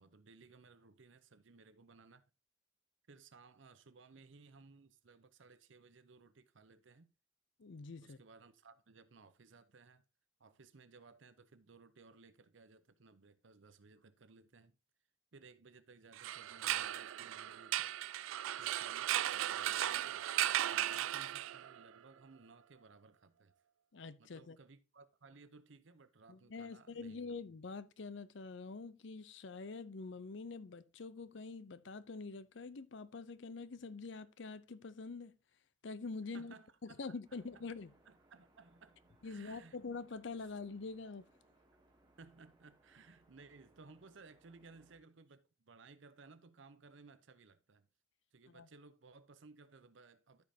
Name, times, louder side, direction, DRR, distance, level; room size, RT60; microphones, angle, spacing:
voice 1, 0.0-2.2 3.1-7.1 8.0-10.0 10.4-14.8 15.3-17.9 18.6-20.3 20.7-23.5 24.2-27.2 36.3-37.6 38.1-39.8 42.2-47.9 48.3-50.4, right 4 dB, 65° right, 0.7 m, -60 dB
voice 2, 7.6-8.2 23.9-24.6 26.3-35.3 35.8-36.5 36.8-37.9 39.2-41.3 48.5-48.7, left 4 dB, 60° left, 0.6 m, -46 dB
sound 1, 16.1-21.8, right 13 dB, 85° right, 0.3 m, -36 dB
sound 2, 37.2-45.0, right 1 dB, 20° right, 1.5 m, -70 dB
13.5 x 5.3 x 2.8 m
head